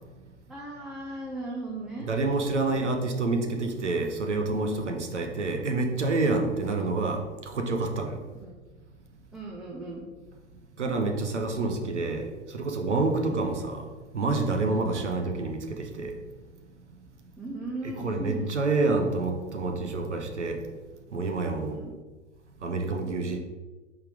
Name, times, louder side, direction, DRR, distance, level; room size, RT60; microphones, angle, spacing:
voice 1, 0.5-2.9 4.7-4.9 6.6-7.0 8.3-8.5 9.3-10.0 13.2-13.5 14.9-15.2 17.4-18.7 21.6-21.9, right 2 dB, ahead, -4 dB, 0.3 m, -39 dB
voice 2, 2.1-7.2 7.5-8.2 10.8-13.9 14.1-16.1 18.0-20.6 21.1-21.8 22.6-23.4, right 3 dB, 75° right, 4 dB, 1.1 m, -28 dB
5.7 x 3.7 x 5.0 m, 1.2 s
figure-of-eight pair, 95°, 36 cm